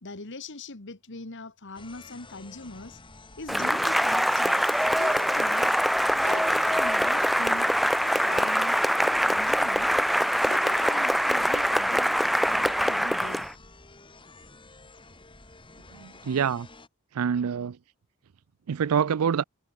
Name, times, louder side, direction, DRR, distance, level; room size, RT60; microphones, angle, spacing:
voice 1, 0.0-3.0 3.4-4.6 5.0-5.8 6.1-7.7 8.0-12.2 12.5-13.5, left 2 dB, 55° left, 1.7 m, -41 dB
sound 1, 1.7-16.9, left 3 dB, 20° left, 3.6 m, -50 dB
Cheering / Applause, 3.5-13.5, equal, ahead, 0.6 m, -24 dB
voice 2, 15.9-16.7 17.1-17.8 18.7-19.4, right 7 dB, 80° right, 0.4 m, -26 dB
head